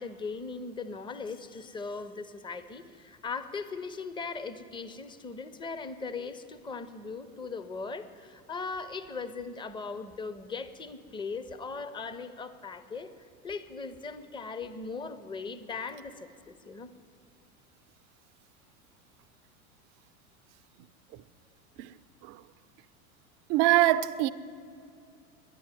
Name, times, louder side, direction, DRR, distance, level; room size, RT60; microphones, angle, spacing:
voice 1, 0.0-13.1 13.4-16.9, left 4 dB, 10° left, 0.6 m, -39 dB
voice 2, 23.5-24.3, right 15 dB, 40° right, 0.5 m, -23 dB
10.5 x 10.5 x 9.6 m
hypercardioid pair, 90°, 43 cm